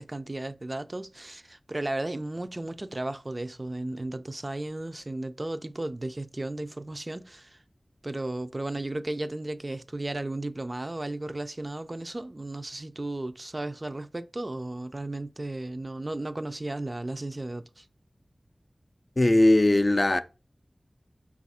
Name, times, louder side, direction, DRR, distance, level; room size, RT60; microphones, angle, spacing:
voice 1, 0.0-7.6 8.0-17.8, right 2 dB, 40° right, 0.3 m, -34 dB
voice 2, 19.2-20.2, left 1 dB, 45° left, 0.3 m, -19 dB
4.1 x 2.4 x 4.1 m
wide cardioid pair, 45°, 0 cm